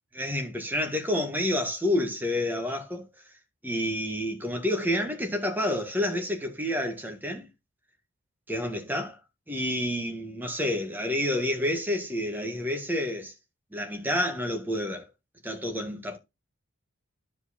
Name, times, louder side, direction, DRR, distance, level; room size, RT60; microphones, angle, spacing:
voice 1, 0.1-3.1 3.6-7.5 8.5-9.2 9.5-13.3 13.7-15.0 15.4-16.2, left 1 dB, 10° right, 1.7 m, -29 dB
11.0 x 5.0 x 4.2 m
head